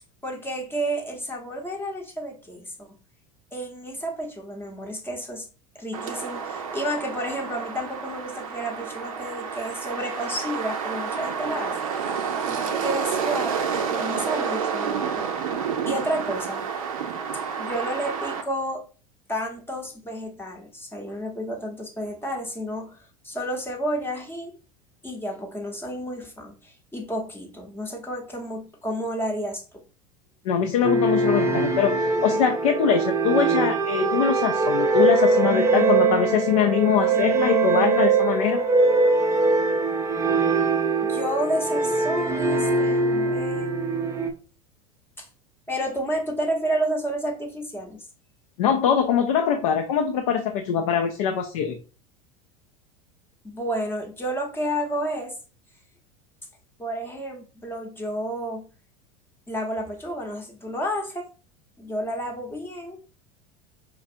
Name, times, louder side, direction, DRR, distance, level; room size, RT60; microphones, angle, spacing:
voice 1, 0.2-3.0 3.5-5.4 5.7-11.8 12.5-15.3 15.8-16.7 17.3-18.8 19.3-24.5 25.0-29.8 41.0-43.7 45.2-45.3 45.7-48.1 53.5-55.4 56.8-58.7 59.5-61.3 61.8-63.0, equal, 10° left, 0.8 m, -31 dB
sound 1, 5.9-18.4, right 6 dB, 75° right, 0.5 m, -29 dB
voice 2, 30.4-38.6 48.6-51.8, left 8 dB, 65° left, 0.5 m, -23 dB
sound 2, 30.8-44.3, right 3 dB, 15° right, 0.5 m, -22 dB
4.5 x 2.4 x 2.5 m
hypercardioid pair, 80°, 18 cm